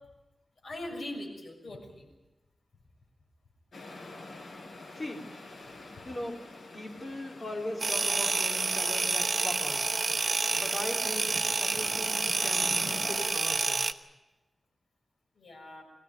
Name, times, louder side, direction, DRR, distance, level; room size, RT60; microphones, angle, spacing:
voice 1, 0.6-2.1 15.4-15.8, left 1 dB, 70° left, 1 dB, 6.9 m, -41 dB
sound 1, 3.7-13.2, left 2 dB, 90° left, 5.5 m, -47 dB
voice 2, 4.9-5.2 6.0-6.4 6.7-9.9 10.5-13.8, left 1 dB, 35° left, 0 dB, 4.1 m, -39 dB
sound 2, 7.8-13.9, right 3 dB, 50° right, 1.0 m, -29 dB
25.5 x 16.0 x 9.5 m, 1.1 s
wide cardioid pair, 125°, 0 cm